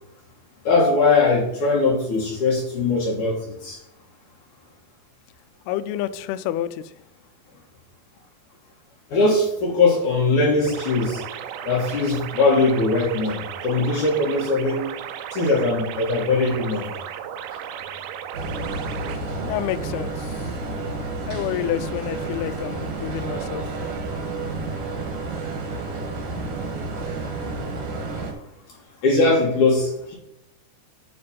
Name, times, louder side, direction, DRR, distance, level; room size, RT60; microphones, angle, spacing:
voice 1, 0.6-3.8 9.1-11.2 11.7-14.8 15.3-16.9 29.0-30.1, left 3 dB, 55° left, -3 dB, 2.5 m, -20 dB
voice 2, 5.7-6.8 19.4-20.4 21.3-23.6, left 12 dB, 90° left, 11 dB, 2.2 m, -28 dB
sound 1, 10.6-19.2, right 9 dB, 85° right, 2.8 m, -35 dB
sound 2, 18.3-28.3, right 3 dB, 55° right, 2.2 m, -30 dB
9.8 x 4.3 x 5.3 m, 0.82 s
omnidirectional pair, 5.1 m